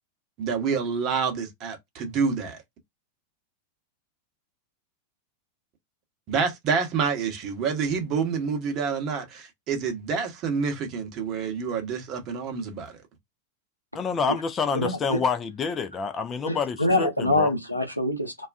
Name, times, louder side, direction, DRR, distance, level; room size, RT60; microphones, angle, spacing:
voice 1, 0.4-2.6 6.3-13.0, right 5 dB, 35° right, 0.9 m, -28 dB
voice 2, 13.9-17.5, left 5 dB, 25° left, 0.4 m, -28 dB
voice 3, 14.7-15.2 16.5-18.5, left 2 dB, 90° left, 0.7 m, -25 dB
2.3 x 2.2 x 2.4 m
figure-of-eight pair, 90°, 0 cm